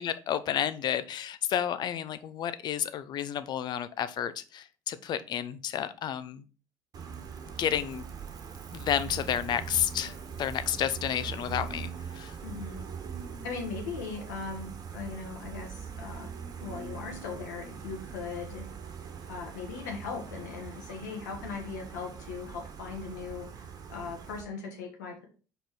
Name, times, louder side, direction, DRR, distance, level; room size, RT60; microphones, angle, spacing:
voice 1, 0.0-6.4 7.6-8.0 8.7-12.4, left 9 dB, 50° left, 13 dB, 0.6 m, -31 dB
Gull seagull, 6.9-24.4, right 7 dB, 45° right, 1.3 m, -42 dB
voice 2, 12.4-12.9 13.4-16.3 16.6-18.6 19.3-23.5 23.9-25.3, left 5 dB, 80° left, 1 dB, 1.7 m, -39 dB
5.0 x 4.4 x 4.6 m, 0.36 s
hypercardioid pair, 60°, 9 cm